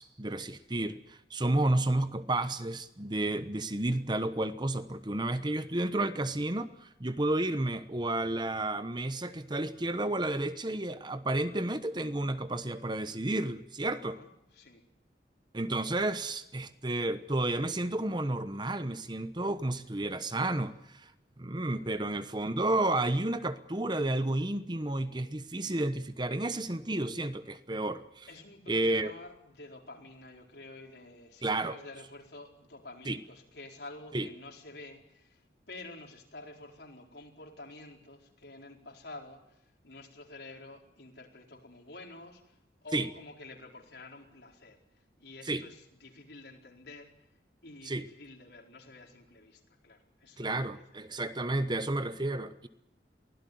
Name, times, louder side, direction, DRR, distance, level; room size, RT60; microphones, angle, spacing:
voice 1, 0.0-14.2 15.5-21.1 21.4-28.3 28.7-29.1 31.4-31.8 33.1-33.2 34.1-34.3 42.9-43.1 45.5-45.6 47.8-48.0 50.4-52.7, right 2 dB, 25° right, 1.0 m, -31 dB
voice 2, 14.0-14.8 21.8-22.1 28.3-47.3 47.6-50.8, left 2 dB, 70° left, 4.4 m, -50 dB
23.5 x 16.5 x 9.4 m
head